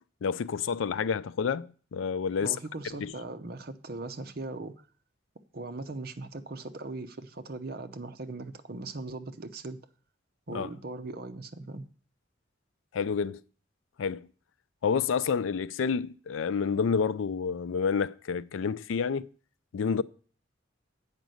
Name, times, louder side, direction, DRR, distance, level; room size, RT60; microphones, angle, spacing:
voice 1, 0.2-2.6 3.0-3.1 10.5-10.7 12.9-13.4 14.0-14.3 14.8-19.3 19.7-20.0, left 6 dB, 90° left, 0.4 m, -29 dB
voice 2, 2.4-4.7 5.5-9.8 10.5-11.9, right 2 dB, 50° right, 0.7 m, -39 dB
8.2 x 5.2 x 7.7 m
head